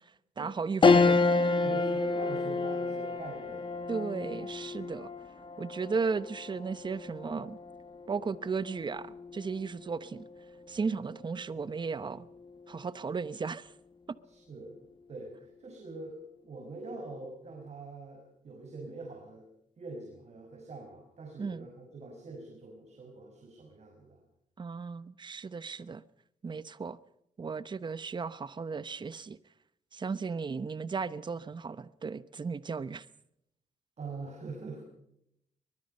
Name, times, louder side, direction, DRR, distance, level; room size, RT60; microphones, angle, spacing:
voice 1, 0.4-1.5 3.9-5.1 5.6-7.6 8.1-10.3 10.7-12.3 12.7-13.7 14.1-14.2 21.4-21.7 24.6-26.0 26.4-27.0 27.4-29.4 29.9-33.1, right 5 dB, 35° right, 0.9 m, -35 dB
sound 1, 0.8-10.4 10.9-11.0 12.3-12.8, left 3 dB, 40° left, 1.8 m, -30 dB
voice 2, 1.6-3.7 4.4-4.5 14.2-14.7 15.1-19.5 19.8-24.2 34.0-34.8, right 3 dB, 55° right, 5.7 m, -44 dB
23.5 x 21.5 x 5.5 m
cardioid pair, 105°, 14 cm